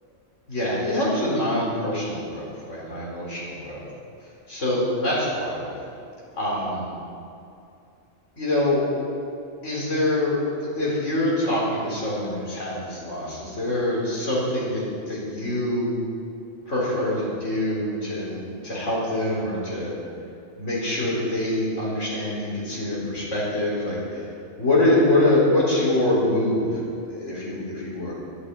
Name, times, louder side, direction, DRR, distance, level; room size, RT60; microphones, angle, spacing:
voice 1, 0.5-3.9 4.5-5.8 6.3-6.9 8.4-8.9 9.6-15.9 16.7-19.9 20.6-24.3 24.6-26.8 27.1-28.1, left 1 dB, 85° left, -6 dB, 4.3 m, -25 dB
12.5 x 8.0 x 8.1 m, 2.6 s
omnidirectional pair, 1.2 m